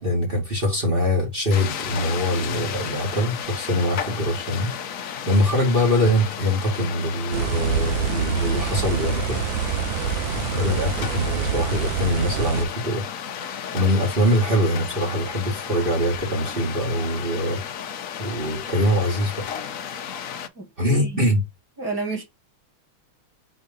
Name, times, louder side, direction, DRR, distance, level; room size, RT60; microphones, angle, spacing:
voice 1, 0.0-9.4 10.3-13.0 13.4-17.6 18.2-19.8 20.8-21.4, equal, 25° right, 1.9 m, -23 dB
sound 1, 1.5-20.5, left 8 dB, 75° left, 0.7 m, -33 dB
sound 2, 7.3-12.7, right 9 dB, 70° right, 1.3 m, -27 dB
voice 2, 20.5-21.2 21.8-22.2, right 3 dB, 10° left, 1.6 m, -30 dB
4.6 x 3.9 x 5.2 m
omnidirectional pair, 2.3 m